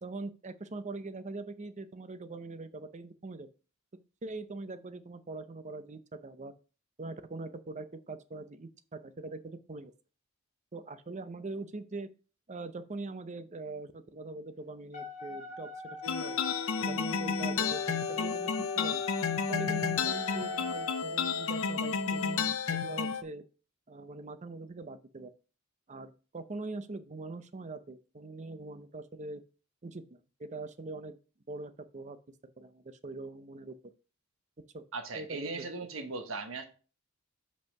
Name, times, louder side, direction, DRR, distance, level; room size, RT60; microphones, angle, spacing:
voice 1, 0.0-3.5 4.2-6.5 7.0-9.9 10.7-12.1 12.5-16.4 16.8-19.0 19.5-23.4 23.9-25.3 25.9-29.4 29.8-31.2 31.5-32.2 32.6-33.8 34.7-34.8 35.1-35.7, right 3 dB, 35° right, 0.6 m, -42 dB
Wind instrument woodwind instrument, 14.9-21.0, left 5 dB, 35° left, 1.8 m, -42 dB
sound 1, 16.0-23.2, left 6 dB, 70° left, 0.7 m, -31 dB
voice 2, 34.9-36.6, right 3 dB, 65° right, 1.2 m, -38 dB
5.5 x 5.3 x 5.3 m
head